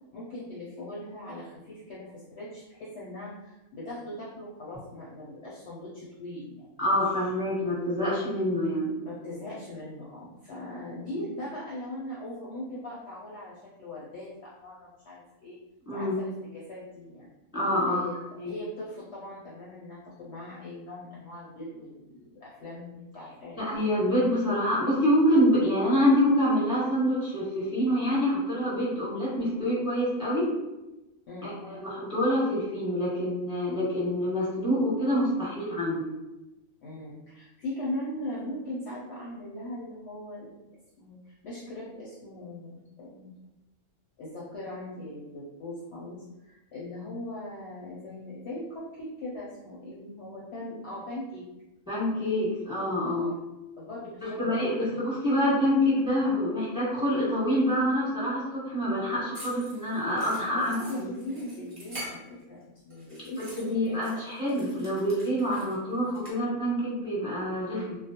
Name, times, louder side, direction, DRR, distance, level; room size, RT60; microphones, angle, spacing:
voice 1, 0.1-6.7 9.0-15.6 15.9-17.3 17.9-18.2 18.5-23.8 31.3-31.6 36.8-40.5 41.0-43.3 44.2-51.4 53.0-53.3 53.8-55.0 60.5-60.6 60.9-62.2 62.5-64.4, left 1 dB, 65° left, -6 dB, 0.7 m, -40 dB
voice 2, 6.8-9.0 15.9-16.1 17.5-18.0 18.4-18.5 23.5-30.5 31.4-36.0 51.9-53.3 54.4-61.0 63.6-68.0, equal, 5° right, -10 dB, 1.0 m, -26 dB
sound 1, 59.3-62.6 62.9-66.3, equal, 30° right, 0.8 m, -45 dB
2.3 x 2.0 x 2.7 m, 0.99 s
omnidirectional pair, 1.4 m